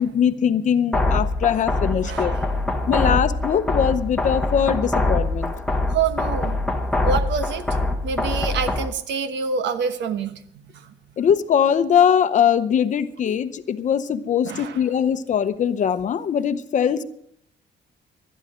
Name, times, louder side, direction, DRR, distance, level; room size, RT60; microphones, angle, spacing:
voice 1, 0.0-2.3 2.9-5.5 11.2-17.0, left 8 dB, 45° left, 12 dB, 0.8 m, -21 dB
sound 1, 0.9-8.9, left 2 dB, 5° left, 0.9 m, -24 dB
voice 2, 2.0-2.5 5.9-6.6 7.0-7.6 8.0-10.4 14.4-14.8, right 6 dB, 80° right, 10 dB, 1.2 m, -26 dB
20.0 x 12.0 x 3.7 m, 0.66 s
cardioid pair, 165°, 18 cm